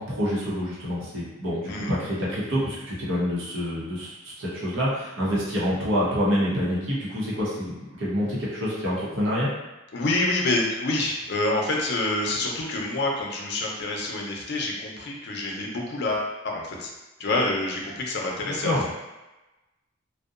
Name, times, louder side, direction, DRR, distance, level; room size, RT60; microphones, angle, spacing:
voice 1, 0.0-9.5 18.4-18.8, equal, 75° right, -7 dB, 0.8 m, -27 dB
voice 2, 9.9-16.9 17.2-18.9, left 2 dB, 55° left, -1 dB, 0.5 m, -27 dB
2.7 x 2.1 x 2.4 m, 1.0 s
head